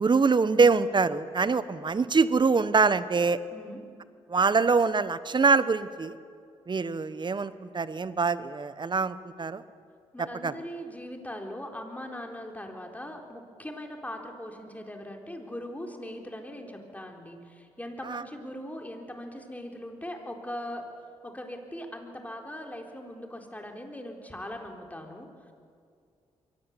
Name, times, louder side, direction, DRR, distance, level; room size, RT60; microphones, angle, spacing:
voice 1, 0.0-3.4 4.3-6.2 6.7-9.6 10.2-10.6 18.0-18.2, right 4 dB, 35° right, 14 dB, 1.1 m, -24 dB
voice 2, 3.5-3.8 10.1-20.8 21.2-25.3, left 1 dB, 10° left, 2 dB, 4.1 m, -40 dB
23.5 x 17.5 x 8.4 m, 2.3 s
supercardioid pair, 60°, 13 cm